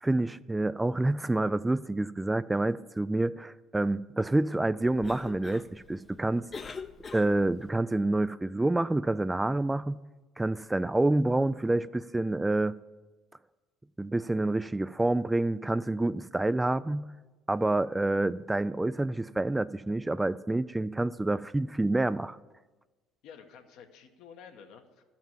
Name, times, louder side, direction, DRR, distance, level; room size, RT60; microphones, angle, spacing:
voice 1, 0.0-6.5 7.1-10.0 10.4-12.7 14.0-17.1 17.5-22.4, right 2 dB, 10° right, 0.3 m, -28 dB
Cough, 4.8-7.7, left 5 dB, 35° left, 0.7 m, -44 dB
voice 2, 23.2-25.0, left 7 dB, 70° left, 1.2 m, -51 dB
12.5 x 5.8 x 7.3 m
hypercardioid pair, 70°, 0 cm